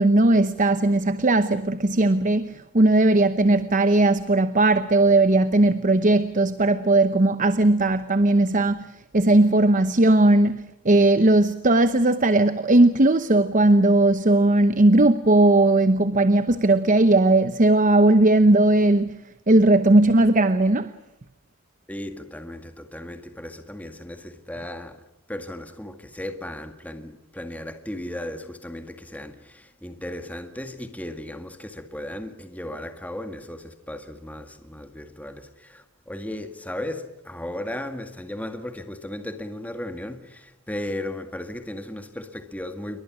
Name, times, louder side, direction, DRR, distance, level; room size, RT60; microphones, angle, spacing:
voice 1, 0.0-19.2 19.5-20.9, right 2 dB, 35° right, 0.9 m, -18 dB
voice 2, 21.9-25.0 25.3-43.0, left 1 dB, 5° left, 1.9 m, -36 dB
28.5 x 23.5 x 6.3 m
head